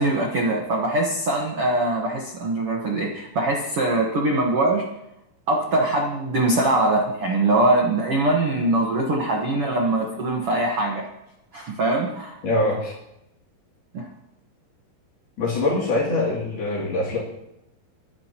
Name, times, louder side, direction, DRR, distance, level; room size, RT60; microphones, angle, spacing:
voice 1, 0.0-4.8 5.5-11.1 11.5-12.4 13.9-14.1, right 2 dB, 70° right, -1 dB, 1.3 m, -22 dB
voice 2, 12.4-12.9 15.4-17.2, left 2 dB, 65° left, -5 dB, 4.8 m, -23 dB
23.0 x 11.5 x 3.0 m, 0.83 s
omnidirectional pair, 4.9 m